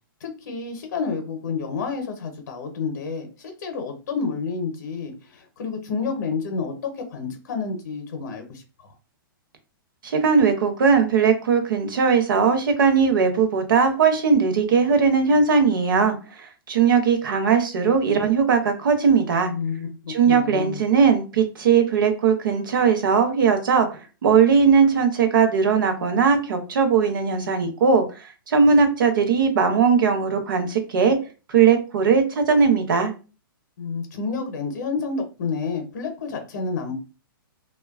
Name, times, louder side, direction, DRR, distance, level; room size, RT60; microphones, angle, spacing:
voice 1, 0.2-8.9 19.5-20.8 33.8-37.0, left 4 dB, 50° left, 5 dB, 0.6 m, -29 dB
voice 2, 10.0-19.5 20.1-31.2 31.5-33.1, right 5 dB, 65° right, 7 dB, 0.7 m, -19 dB
2.9 x 2.2 x 2.3 m, 0.33 s
hypercardioid pair, 180°, 12 cm